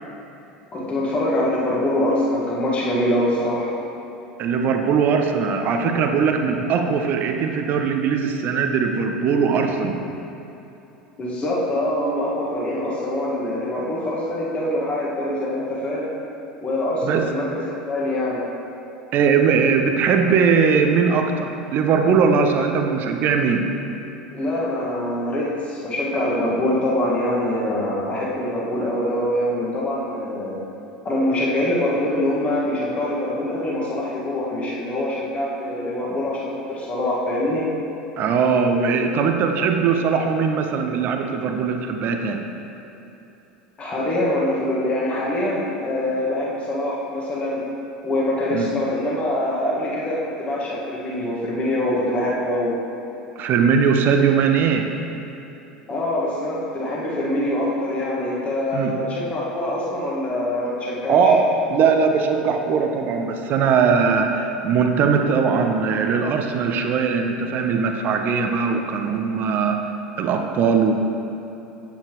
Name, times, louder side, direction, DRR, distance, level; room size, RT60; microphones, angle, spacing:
voice 1, 0.7-3.7 11.2-16.1 16.6-18.4 24.3-30.6 31.0-37.7 43.8-47.7 48.0-52.8 55.9-61.3, left 1 dB, 25° left, -5 dB, 1.7 m, -24 dB
voice 2, 4.4-10.0 17.0-17.3 19.1-23.7 38.2-42.4 48.5-48.7 53.4-54.9 58.7-58.9 61.1-69.8 70.2-70.9, right 5 dB, 40° right, 4 dB, 0.7 m, -20 dB
9.2 x 8.6 x 3.1 m, 3.0 s
figure-of-eight pair, 75°, 5 cm